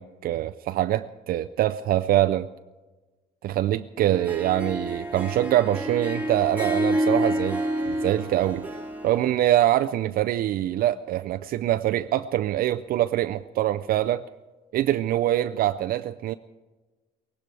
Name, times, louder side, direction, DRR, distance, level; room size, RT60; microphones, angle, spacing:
voice 1, 0.0-2.5 3.4-8.6 9.0-14.2 14.7-16.3, right 13 dB, 60° right, 11 dB, 0.4 m, -24 dB
Harp, 4.1-9.4, right 1 dB, 10° right, 1.6 m, -28 dB
18.0 x 17.0 x 4.7 m, 1.2 s
cardioid pair, 110°, 17 cm